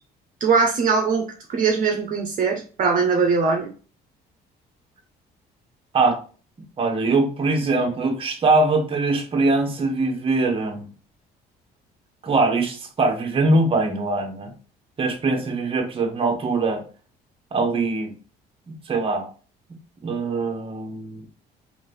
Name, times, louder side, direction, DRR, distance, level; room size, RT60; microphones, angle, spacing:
voice 1, 0.4-3.7, right 5 dB, 50° right, 0.8 m, -21 dB
voice 2, 6.8-10.9 12.2-14.5 15.0-16.8 17.5-18.1 18.7-19.3 20.0-21.3, right 3 dB, 35° right, 1.0 m, -22 dB
3.8 x 2.6 x 3.2 m
cardioid pair, 110°, 17 cm